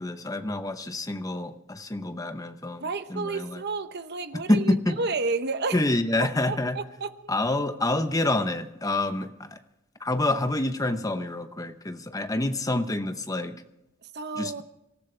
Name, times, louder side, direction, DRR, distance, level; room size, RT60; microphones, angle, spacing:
voice 1, 0.0-2.8 3.1-3.6 4.5-5.0 5.7-6.8 7.3-9.6 10.0-13.6 14.4-14.6, left 2 dB, 15° left, 0.8 m, -27 dB
voice 2, 2.8-5.8 6.5-7.3 14.0-14.6, right 3 dB, 45° right, 0.9 m, -31 dB
26.0 x 13.5 x 3.4 m
head